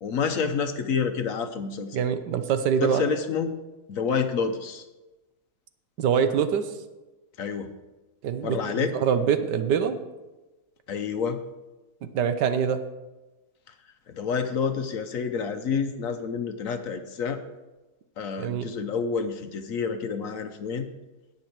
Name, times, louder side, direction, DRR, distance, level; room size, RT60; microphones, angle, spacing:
voice 1, 0.0-2.0 2.8-3.5 3.9-4.8 7.4-7.7 8.4-9.0 10.9-11.4 14.1-17.4 18.2-20.9, left 6 dB, 60° left, 8 dB, 1.0 m, -28 dB
voice 2, 1.9-3.0 6.0-6.7 8.2-8.6 8.9-10.0 12.1-12.8 18.4-18.7, right 7 dB, 80° right, 10 dB, 1.4 m, -24 dB
17.5 x 6.1 x 4.5 m, 1.1 s
omnidirectional pair, 1.8 m